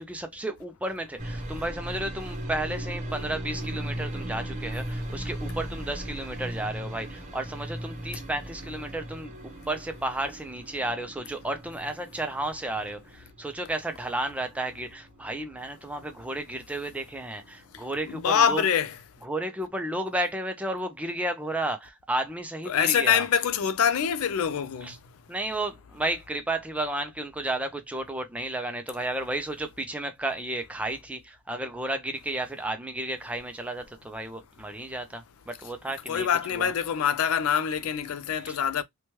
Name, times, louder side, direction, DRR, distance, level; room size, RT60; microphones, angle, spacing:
voice 1, 0.0-18.6 19.2-23.3 24.8-25.0 25.3-36.7 38.4-38.6, right 1 dB, 5° right, 0.3 m, -33 dB
sound 1, 1.2-17.0 17.2-18.0, right 1 dB, 35° right, 0.7 m, -38 dB
voice 2, 18.0-19.0 22.6-24.9 36.1-38.8, left 8 dB, 75° left, 0.4 m, -25 dB
3.0 x 2.2 x 2.8 m
head